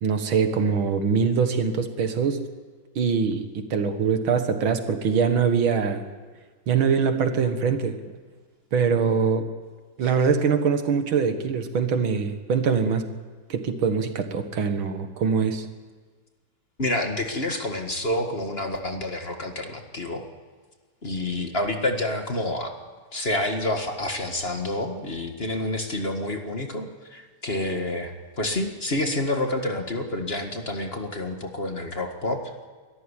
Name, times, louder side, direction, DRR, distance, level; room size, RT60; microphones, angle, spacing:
voice 1, 0.0-2.4 3.0-6.1 6.7-8.0 8.7-9.5 10.0-13.1 13.5-15.7, right 6 dB, 80° right, 8 dB, 2.4 m, -23 dB
voice 2, 16.8-20.3 21.0-22.7 23.1-32.4, left 1 dB, 30° left, 4 dB, 1.8 m, -28 dB
22.5 x 14.0 x 9.9 m, 1.5 s
omnidirectional pair, 2.2 m